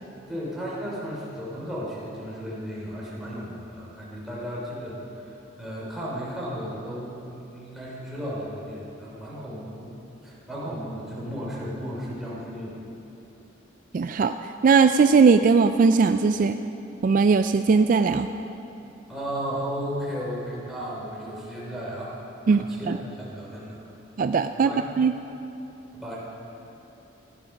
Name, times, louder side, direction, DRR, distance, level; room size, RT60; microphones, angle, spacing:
voice 1, 0.3-9.9 10.2-12.8 19.1-22.1 22.4-23.8 24.5-24.8 25.9-26.3, equal, ahead, -7 dB, 3.8 m, -34 dB
voice 2, 13.9-14.3 14.6-16.6 17.0-18.3 22.5-23.0 24.2-24.7 25.0-25.1, right 5 dB, 45° right, 9 dB, 0.3 m, -19 dB
15.0 x 10.0 x 5.8 m, 2.9 s
head